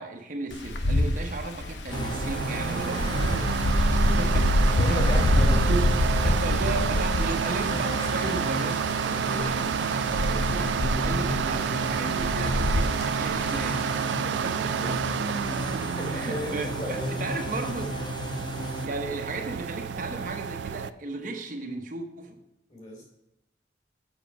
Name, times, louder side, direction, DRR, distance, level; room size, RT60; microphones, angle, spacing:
voice 1, 0.0-3.5 4.0-8.9 9.1-15.7 16.1-18.0 18.8-22.4, right 2 dB, 45° right, 3 dB, 0.8 m, -35 dB
Wind, 0.5-13.6, left 1 dB, 75° left, 0.8 m, -26 dB
sound 1, 1.9-18.9, left 1 dB, 25° left, 0.5 m, -34 dB
sound 2, 1.9-20.9, right 8 dB, 75° right, 0.3 m, -30 dB
voice 2, 4.8-5.6 9.2-9.3 14.2-14.4 14.8-14.9 15.4-17.2 22.7-23.0, left 1 dB, 40° left, 0 dB, 3.1 m, -36 dB
7.2 x 6.1 x 5.8 m, 0.87 s
head